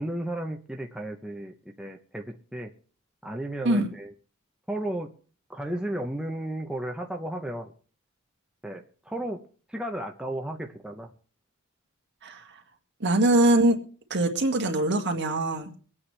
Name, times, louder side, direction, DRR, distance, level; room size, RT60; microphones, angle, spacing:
voice 1, 0.0-2.7 3.2-4.1 4.7-5.1 5.5-7.7 8.6-9.4 9.7-11.1, right 1 dB, 5° right, 1 dB, 0.7 m, -34 dB
voice 2, 13.0-13.8 14.1-15.8, right 1 dB, 55° right, 3 dB, 1.9 m, -22 dB
23.5 x 8.6 x 3.3 m, 0.42 s
head